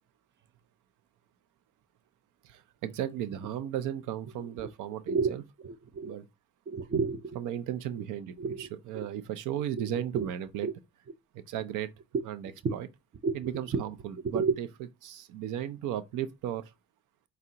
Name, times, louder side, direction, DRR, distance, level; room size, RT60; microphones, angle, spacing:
voice 1, 2.4-5.4 6.0-6.3 7.4-10.7 11.3-11.9 12.3-12.9 13.3-14.7 15.0-16.6, right 11 dB, 90° right, 0.5 m, -35 dB
voice 2, 5.1-5.4 5.6-6.2 6.7-7.4 8.4-9.1 10.2-10.3 10.6-10.7 12.1-12.2 13.2-13.4 13.7-13.8 14.3-14.6, right 4 dB, 40° right, 0.6 m, -30 dB
5.4 x 2.0 x 3.7 m
cardioid pair, 90°, 30 cm